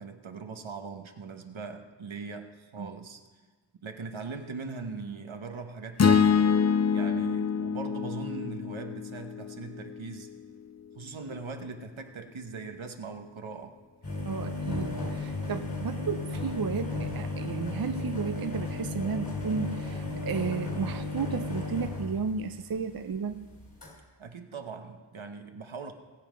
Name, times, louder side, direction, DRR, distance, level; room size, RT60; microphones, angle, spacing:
voice 1, 0.0-3.2 3.8-6.4 6.9-10.3 11.0-13.7 24.2-25.9, right 4 dB, 80° right, 5 dB, 1.1 m, -40 dB
sound 1, 6.0-10.3, left 6 dB, 35° left, 0.4 m, -26 dB
sound 2, 14.0-23.9, left 3 dB, 60° left, 3.5 m, -34 dB
voice 2, 14.3-23.5, right 5 dB, 50° right, 9 dB, 0.6 m, -33 dB
19.0 x 7.5 x 5.1 m, 1.3 s
wide cardioid pair, 75°, 47 cm